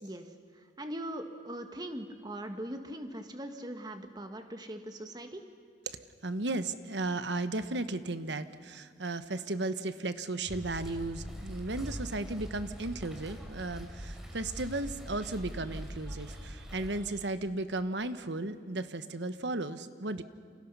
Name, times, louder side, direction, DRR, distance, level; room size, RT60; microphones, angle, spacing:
voice 1, 0.8-5.4, right 1 dB, 25° right, 6 dB, 1.7 m, -40 dB
voice 2, 6.2-20.2, right 2 dB, 80° right, 11 dB, 1.2 m, -35 dB
sound 1, 10.5-17.0, equal, 5° right, 3.4 m, -43 dB
29.5 x 27.5 x 5.6 m, 2.3 s
head